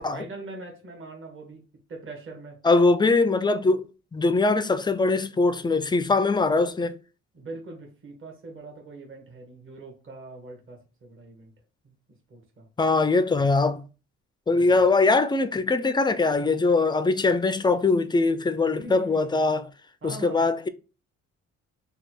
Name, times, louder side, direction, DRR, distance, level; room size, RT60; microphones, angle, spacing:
voice 1, 0.0-1.6 1.9-2.6 7.3-11.5 11.8-11.9 12.3-12.7 14.5-14.8 18.7-19.3 20.0-20.4, right 2 dB, 40° right, 1.3 m, -42 dB
voice 2, 2.6-3.8 4.1-7.0 12.8-13.8 14.5-19.7 20.0-20.7, left 3 dB, 15° left, 0.3 m, -22 dB
3.1 x 2.3 x 4.3 m
cardioid pair, 90°, 30 cm